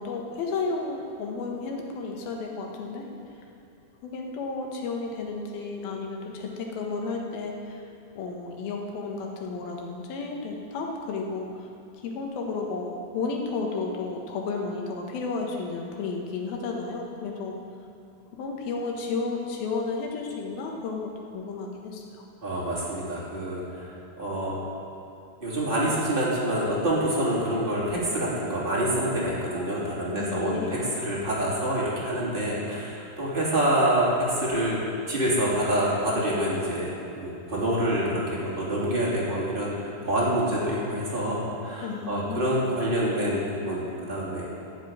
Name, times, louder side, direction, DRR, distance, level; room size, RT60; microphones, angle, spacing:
voice 1, 0.0-3.1 4.0-7.9 8.1-11.7 12.0-17.6 18.3-22.0 30.1-30.8 41.8-42.6, left 4 dB, 70° left, 1 dB, 3.0 m, -32 dB
voice 2, 22.4-23.9 24.2-24.5 25.4-34.8 35.1-36.9 37.2-44.4, right 1 dB, 15° right, -6 dB, 2.2 m, -26 dB
12.0 x 7.5 x 9.0 m, 2.8 s
omnidirectional pair, 4.8 m